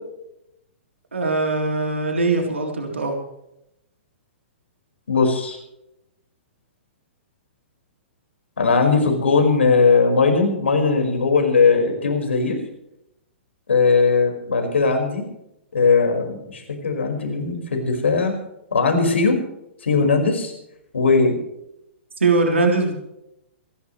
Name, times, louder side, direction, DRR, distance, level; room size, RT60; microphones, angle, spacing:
voice 1, 1.1-3.2 22.2-22.9, right 3 dB, 80° right, 2 dB, 3.6 m, -21 dB
voice 2, 5.1-5.6 8.6-12.6 13.7-15.2 15.7-18.3 18.7-19.4 19.8-20.5 20.9-21.4, left 4 dB, 75° left, 4 dB, 5.1 m, -19 dB
27.0 x 12.0 x 3.2 m, 0.83 s
figure-of-eight pair, 115°, 6 cm